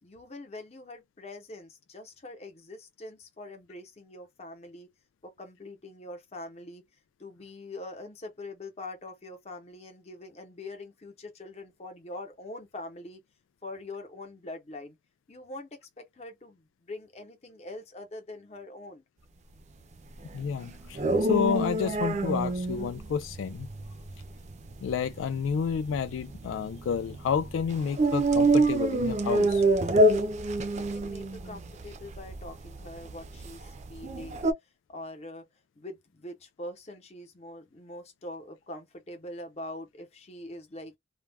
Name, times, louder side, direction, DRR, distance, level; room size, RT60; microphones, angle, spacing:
voice 1, 0.0-4.9 5.2-6.8 7.2-13.2 13.6-15.0 15.3-19.0 30.8-34.5 34.9-35.5 35.8-41.0, left 2 dB, 35° left, 0.7 m, -43 dB
sound 1, 20.2-34.5, right 2 dB, 35° right, 0.4 m, -27 dB
voice 2, 20.3-23.7 24.8-29.6, left 7 dB, 85° left, 0.3 m, -30 dB
2.3 x 2.1 x 3.3 m
head